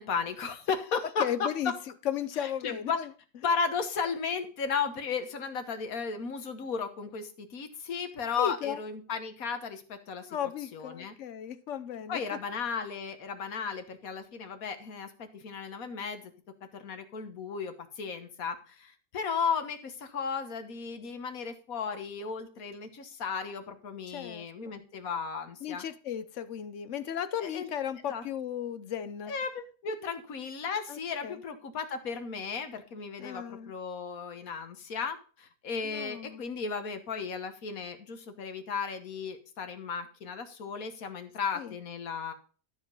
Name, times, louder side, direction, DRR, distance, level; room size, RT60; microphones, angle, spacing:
voice 1, 0.0-1.5 2.4-3.0 3.4-10.4 10.7-11.1 12.1-16.3 16.7-25.8 27.4-27.7 28.0-28.2 29.3-42.3, left 5 dB, 80° left, 1.7 m, -35 dB
voice 2, 1.2-1.7 2.0-3.1 8.4-8.8 10.3-12.2 24.1-24.8 25.6-29.4 30.9-31.4 33.2-33.7 35.8-36.4 41.5-41.7, left 9 dB, 65° left, 1.0 m, -35 dB
12.5 x 5.1 x 5.5 m
omnidirectional pair, 1.5 m